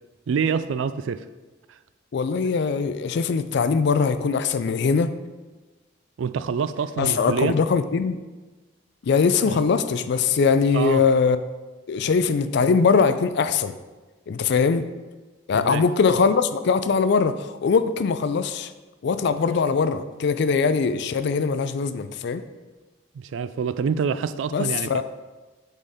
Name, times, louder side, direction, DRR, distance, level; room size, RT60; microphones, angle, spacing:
voice 1, 0.3-1.2 6.2-7.6 9.4-9.6 10.7-11.0 15.5-15.8 23.1-25.0, right 6 dB, 70° right, 13 dB, 0.3 m, -26 dB
voice 2, 2.1-5.1 7.0-8.2 9.0-11.4 11.9-13.7 14.3-14.8 15.5-18.7 19.0-22.4 24.5-25.0, left 5 dB, 60° left, 11 dB, 0.4 m, -21 dB
8.0 x 4.3 x 3.6 m, 1.2 s
head